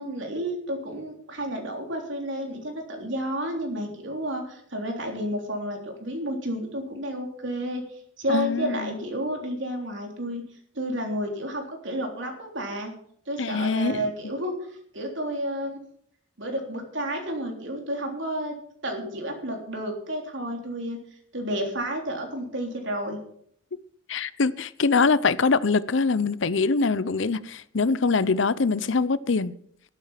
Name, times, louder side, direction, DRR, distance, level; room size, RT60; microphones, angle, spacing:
voice 1, 0.0-7.8 8.2-10.4 10.8-12.9 13.3-15.8 16.4-18.5 18.8-21.0 21.3-23.2, equal, 65° right, 3.6 m, -31 dB
voice 2, 8.3-8.9 13.4-14.3 24.1-29.5, left 4 dB, 65° left, 0.7 m, -24 dB
12.0 x 11.5 x 5.8 m
head